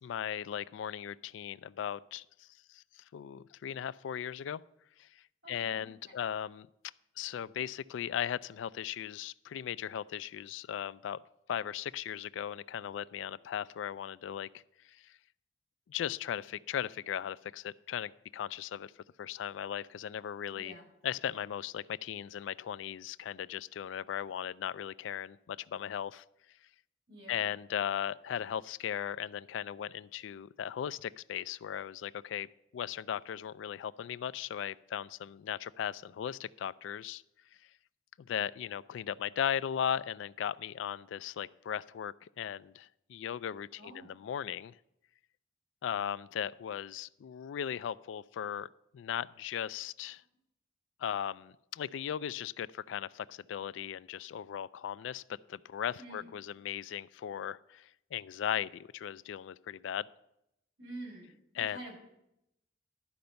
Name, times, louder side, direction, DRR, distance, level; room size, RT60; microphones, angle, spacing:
voice 1, 0.0-4.6 5.0-6.7 7.2-11.2 11.5-15.2 15.9-18.9 19.2-20.8 21.0-26.2 27.3-32.5 32.7-37.2 38.2-44.8 45.8-50.2 51.0-55.2 55.5-60.1 61.6-61.8, left 9 dB, 85° left, 18 dB, 0.3 m, -37 dB
voice 2, 5.4-6.1 20.5-20.9 27.1-27.5 43.8-44.1 56.0-56.3 60.8-62.0, right 1 dB, 80° right, -2 dB, 4.6 m, -48 dB
12.0 x 5.2 x 6.8 m, 0.82 s
head